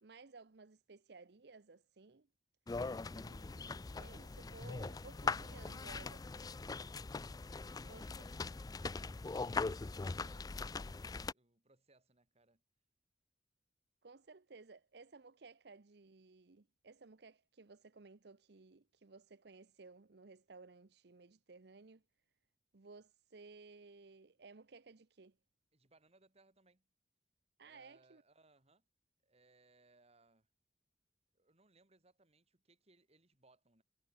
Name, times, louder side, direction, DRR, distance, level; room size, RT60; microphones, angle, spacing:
voice 1, 0.0-2.3 3.1-6.5 7.8-8.0 14.0-22.0 22.7-25.3 27.6-28.2, right 4 dB, 65° right, 0.8 m, -58 dB
sound 1, 2.7-11.3, left 4 dB, 20° left, 0.4 m, -41 dB
voice 2, 7.6-12.6 25.7-26.9 27.6-28.8 29.2-30.5 31.3-33.8, right 2 dB, 35° right, 3.3 m, -70 dB
head